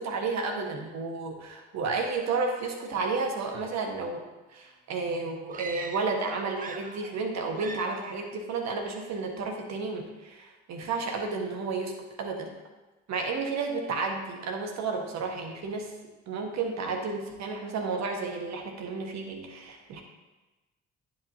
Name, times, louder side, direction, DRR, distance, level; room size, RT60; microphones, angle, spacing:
voice 1, 0.0-4.2 4.5-12.6 13.1-15.9 16.3-20.0, right 4 dB, 50° right, 2 dB, 1.4 m, -32 dB
sound 1, 5.5-6.2 6.5-7.3 7.5-8.1, right 4 dB, 25° right, 0.7 m, -41 dB
9.5 x 7.8 x 2.8 m, 1.1 s
figure-of-eight pair, 45°, 34 cm